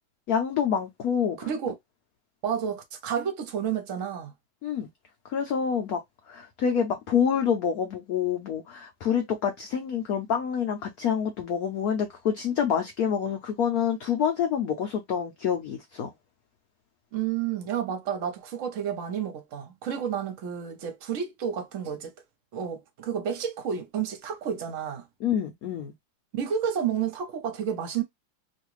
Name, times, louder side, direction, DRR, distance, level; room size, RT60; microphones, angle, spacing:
voice 1, 0.3-1.5 4.6-4.9 5.2-6.0 6.3-16.1 25.2-25.9, left 8 dB, 80° left, 0.8 m, -27 dB
voice 2, 1.4-1.7 2.4-4.3 17.1-22.1 22.5-25.0 26.3-28.0, right 8 dB, 55° right, 0.9 m, -30 dB
3.1 x 2.5 x 3.0 m
omnidirectional pair, 2.2 m